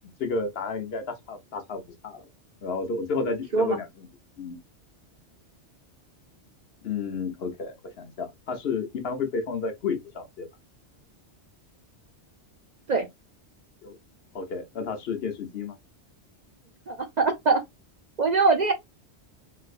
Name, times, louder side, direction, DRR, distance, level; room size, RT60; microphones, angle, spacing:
voice 1, 0.2-2.3 2.6-4.1 4.4-4.6 6.8-10.5 13.8-14.0 14.3-15.8, left 4 dB, 65° left, 0.9 m, -31 dB
voice 2, 16.9-17.6 18.2-18.7, right 4 dB, 50° right, 0.6 m, -22 dB
3.3 x 3.0 x 2.4 m
omnidirectional pair, 1.2 m